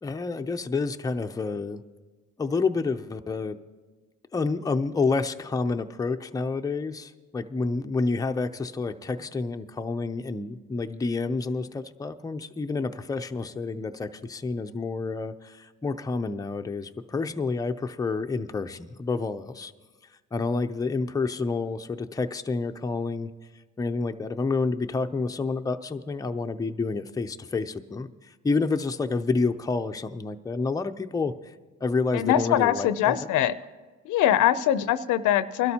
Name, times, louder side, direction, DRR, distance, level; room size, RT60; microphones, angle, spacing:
voice 1, 0.0-1.8 2.4-3.6 4.3-19.7 20.3-23.3 23.8-31.3 31.8-33.1, left 4 dB, 10° left, 7 dB, 0.5 m, -29 dB
voice 2, 32.1-33.5 34.0-35.7, left 11 dB, 80° left, 14 dB, 0.5 m, -22 dB
22.5 x 12.5 x 2.8 m, 1.3 s
cardioid pair, 90°, 30 cm